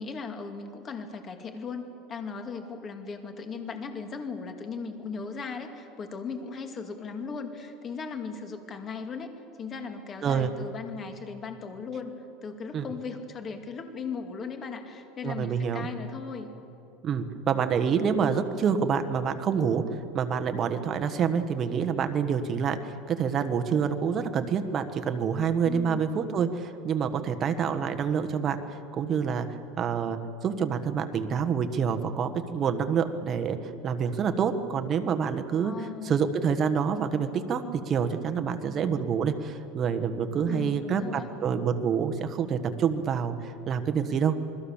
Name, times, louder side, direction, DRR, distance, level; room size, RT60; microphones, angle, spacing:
voice 1, 0.0-9.3 9.6-12.1 12.4-16.5 25.6-26.1 35.6-36.2 40.5-41.3, left 5 dB, 25° left, 6 dB, 2.4 m, -37 dB
voice 2, 15.2-15.9 17.0-19.8 20.1-44.3, right 7 dB, 30° right, 8 dB, 1.4 m, -27 dB
28.0 x 21.0 x 7.3 m, 2.9 s
supercardioid pair, 145°, 0 cm